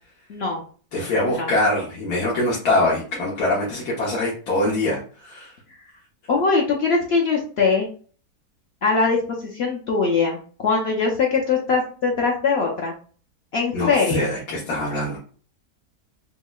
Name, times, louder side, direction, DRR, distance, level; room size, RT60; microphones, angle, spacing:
voice 1, 0.3-0.6 1.3-1.5 6.3-7.9 8.8-9.2 9.5-12.9 13.5-14.2, left 4 dB, 60° left, 0 dB, 0.7 m, -21 dB
voice 2, 0.9-5.5 13.7-15.2, left 1 dB, 80° left, -5 dB, 1.4 m, -23 dB
5.4 x 2.0 x 2.2 m, 0.42 s
omnidirectional pair, 1.6 m